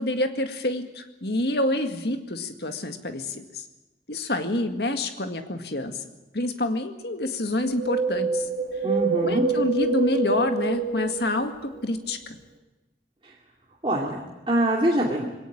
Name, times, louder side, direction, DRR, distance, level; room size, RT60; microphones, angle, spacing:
voice 1, 0.0-3.6 4.1-6.0 6.3-8.5 9.2-12.4, left 1 dB, 65° left, 6 dB, 2.0 m, -27 dB
Wind, 7.6-11.9 12.1-12.2, right 4 dB, 55° right, 2.2 m, -27 dB
voice 2, 8.8-9.5 13.2-13.3 13.8-15.3, right 1 dB, 30° right, -3 dB, 2.5 m, -24 dB
21.0 x 18.0 x 8.7 m, 1.1 s
head